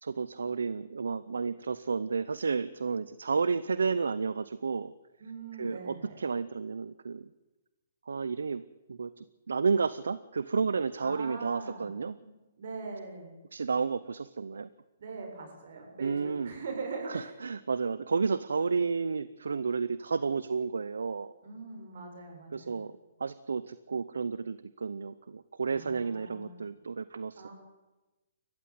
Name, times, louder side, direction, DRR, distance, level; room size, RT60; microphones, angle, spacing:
voice 1, 0.0-4.9 5.6-7.3 8.1-8.6 8.9-12.2 13.5-14.7 16.0-16.5 17.1-21.3 22.5-22.9 23.2-27.5, right 5 dB, 85° right, 16 dB, 0.7 m, -31 dB
voice 2, 5.2-6.2 11.0-11.9 12.2-13.3 15.0-17.3 21.4-22.8 25.7-26.7 27.4-27.5, right 4 dB, 65° right, 3 dB, 7.2 m, -42 dB
20.5 x 14.5 x 9.5 m, 1.1 s
hypercardioid pair, 140°, 0 cm